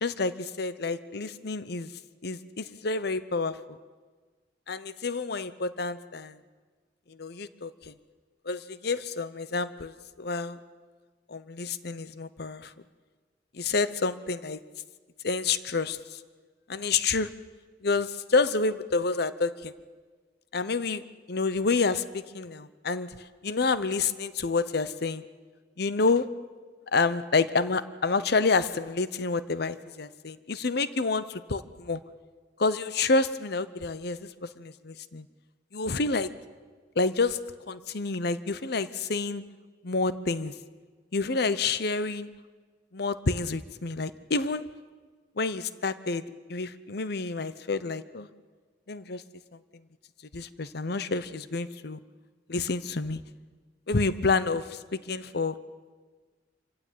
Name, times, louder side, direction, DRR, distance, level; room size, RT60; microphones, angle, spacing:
voice 1, 0.0-1.9 2.2-3.8 4.7-6.4 7.1-7.9 8.4-10.6 11.3-12.7 13.5-14.6 15.2-16.2 16.7-17.3 17.8-19.7 20.5-21.0 21.3-23.2 23.4-25.2 25.8-26.3 26.9-32.0 32.6-35.3 35.7-36.3 37.0-37.4 37.7-39.4 39.8-40.5 41.1-42.3 42.9-44.6 45.4-46.2 46.5-48.3 48.9-49.2 50.3-52.0 52.5-53.2 53.9-55.6, left 4 dB, 60° left, 15 dB, 0.9 m, -28 dB
26.0 x 16.0 x 9.2 m, 1.4 s
head